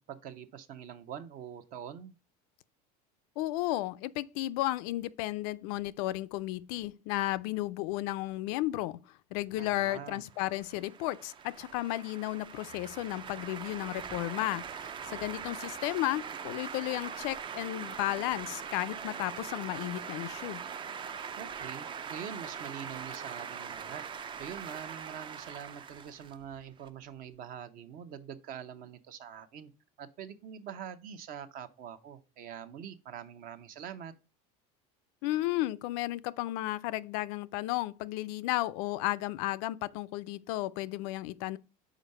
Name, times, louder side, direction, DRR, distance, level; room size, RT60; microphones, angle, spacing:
voice 1, 0.1-2.1 9.6-10.2 21.4-24.0 24.4-29.7 30.0-34.1, right 8 dB, 45° right, 0.8 m, -44 dB
voice 2, 3.4-9.0 9.3-20.6 35.2-41.6, left 17 dB, 70° left, 0.4 m, -33 dB
sound 1, 10.2-26.9, right 7 dB, 25° right, 0.4 m, -42 dB
5.1 x 4.8 x 5.4 m
supercardioid pair, 125°, 20 cm